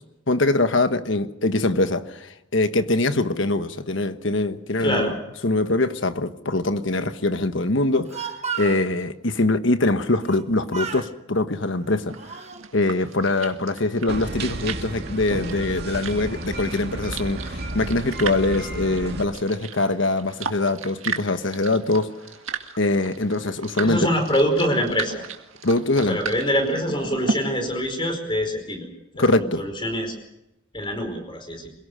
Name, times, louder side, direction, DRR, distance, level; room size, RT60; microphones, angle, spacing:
voice 1, 0.3-5.1 5.4-12.4 12.7-22.1 22.8-24.1 25.6-26.2 29.1-29.6, left 2 dB, 60° left, 10 dB, 1.3 m, -23 dB
voice 2, 4.8-5.1 23.8-25.2 26.1-28.9 29.2-30.1 30.7-31.7, equal, 25° left, 5 dB, 4.9 m, -24 dB
Speech, 7.8-8.9 10.2-10.5 10.7-11.1 11.8-12.6, right 6 dB, 30° right, 1.6 m, -33 dB
sound 1, 12.1-27.3, right 5 dB, 75° right, 2.0 m, -36 dB
sound 2, 14.1-19.2, right 2 dB, 50° right, 2.2 m, -32 dB
26.5 x 17.5 x 6.6 m, 0.88 s
head